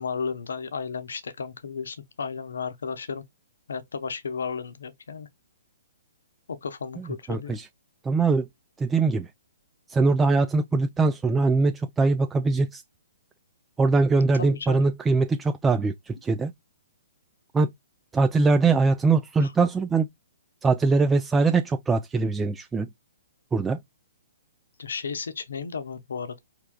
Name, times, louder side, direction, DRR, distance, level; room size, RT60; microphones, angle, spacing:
voice 1, 0.0-3.2 3.7-5.3 6.5-7.6 14.3-14.8 19.4-19.5 24.8-26.4, left 5 dB, 75° left, 0.7 m, -33 dB
voice 2, 7.0-7.7 8.0-8.5 8.8-9.3 9.9-12.8 13.8-16.5 17.5-17.7 18.1-20.1 20.6-22.9 23.5-23.8, right 3 dB, 10° right, 0.3 m, -22 dB
4.7 x 3.2 x 2.2 m
hypercardioid pair, 130°, 0 cm